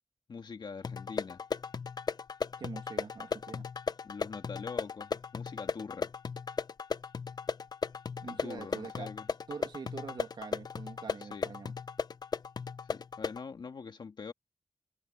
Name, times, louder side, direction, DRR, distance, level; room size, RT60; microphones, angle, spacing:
voice 1, 0.3-1.4 4.0-6.1 8.2-9.3 11.2-11.5 12.9-14.3, left 5 dB, 80° left, 2.3 m, -44 dB
sound 1, 0.8-13.4, left 5 dB, 60° left, 0.6 m, -37 dB
voice 2, 2.6-3.7 8.2-9.1 9.5-11.7, right 5 dB, 80° right, 2.0 m, -44 dB
wide cardioid pair, 115°, 8 cm